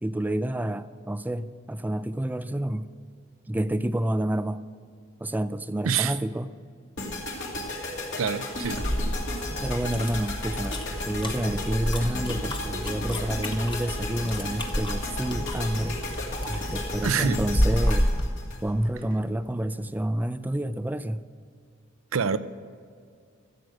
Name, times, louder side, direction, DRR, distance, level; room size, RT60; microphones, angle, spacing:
voice 1, 0.0-2.9 3.5-4.6 5.2-6.5 9.6-16.0 16.5-18.1 18.6-21.3, right 1 dB, 10° right, 0.4 m, -29 dB
voice 2, 5.8-6.2 8.2-8.9 17.0-17.4 22.1-22.4, right 6 dB, 85° right, 0.6 m, -26 dB
sound 1, 7.0-19.2, left 2 dB, 65° left, 2.5 m, -34 dB
sound 2, 8.6-18.3, equal, 25° left, 1.2 m, -30 dB
15.0 x 7.9 x 6.3 m
head